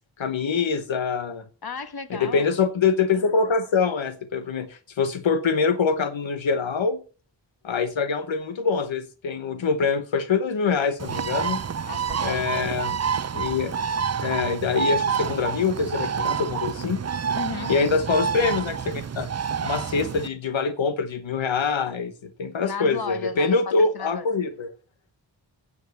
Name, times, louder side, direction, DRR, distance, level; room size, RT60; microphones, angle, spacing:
voice 1, 0.2-1.4 2.1-7.0 7.6-11.6 12.2-13.0 13.3-13.7 14.2-17.0 17.7-19.3 19.6-24.7, left 5 dB, 85° left, 1.1 m, -24 dB
voice 2, 1.6-2.5 11.9-12.7 17.3-17.7 22.6-24.3, left 5 dB, 55° left, 1.4 m, -34 dB
Bird, 11.0-20.3, right 6 dB, 35° right, 0.6 m, -28 dB
16.5 x 7.2 x 4.2 m
cardioid pair, 55°, 45 cm